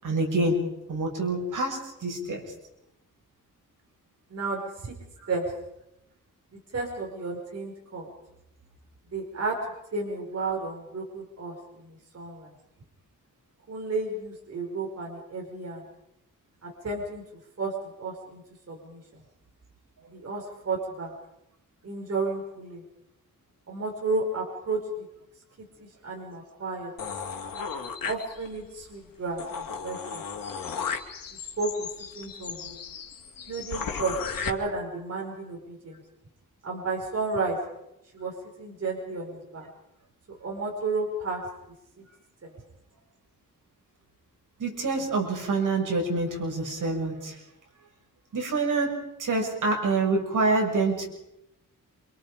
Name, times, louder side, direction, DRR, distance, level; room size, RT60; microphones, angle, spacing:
voice 1, 0.0-0.6 0.9-2.4 32.6-32.8 44.6-47.4 48.3-51.0, right 3 dB, 70° right, 1 dB, 6.8 m, -26 dB
voice 2, 4.3-4.9 5.3-5.5 6.7-8.1 9.1-9.6 9.9-12.5 13.7-15.9 16.6-17.2 17.6-18.4 18.7-19.2 20.1-21.1 21.8-22.8 23.7-24.8 25.8-26.9 28.0-30.2 31.6-31.9 32.2-32.6 33.5-36.0 36.6-37.6 38.1-39.7 40.4-41.4 42.4-42.5, right 3 dB, 50° right, -1 dB, 5.6 m, -32 dB
sound 1, 27.0-28.7 29.1-29.2 29.4-34.5, left 6 dB, 90° left, 2.8 m, -35 dB
28.0 x 27.5 x 5.2 m, 0.84 s
wide cardioid pair, 145°, 32 cm